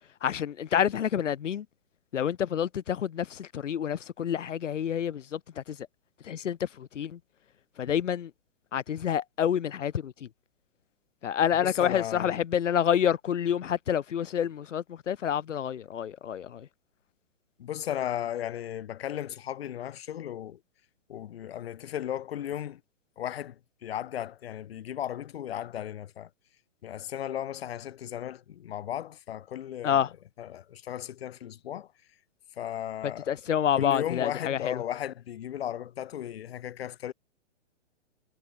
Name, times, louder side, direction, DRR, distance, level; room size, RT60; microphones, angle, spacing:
voice 1, 0.2-1.6 2.1-5.8 6.2-7.2 7.8-8.3 8.7-10.3 11.2-16.7 29.8-30.1 33.0-34.8, left 9 dB, 80° left, 1.5 m, -28 dB
voice 2, 11.6-12.4 17.6-20.6 21.1-22.8 23.2-26.3 26.8-30.0 30.4-31.9 32.6-33.4 33.8-37.1, left 11 dB, 55° left, 1.6 m, -35 dB
hypercardioid pair, 165°, 36 cm